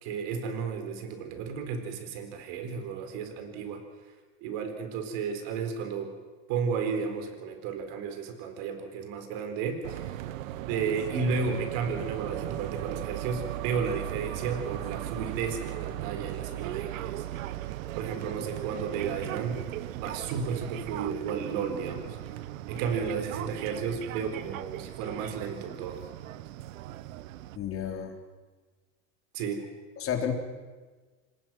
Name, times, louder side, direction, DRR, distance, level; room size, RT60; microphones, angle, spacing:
voice 1, 0.0-3.8 4.4-6.1 6.5-10.1 10.7-17.5 17.9-19.6 20.0-22.2 22.7-26.0 29.3-29.6, right 5 dB, 60° right, 7 dB, 4.4 m, -33 dB
sound 1, 9.8-27.6, right 14 dB, 80° right, 1.0 m, -37 dB
voice 2, 27.6-28.1 30.0-30.3, left 8 dB, 35° left, 3 dB, 3.6 m, -31 dB
26.5 x 19.0 x 6.1 m, 1.4 s
supercardioid pair, 120°, 39 cm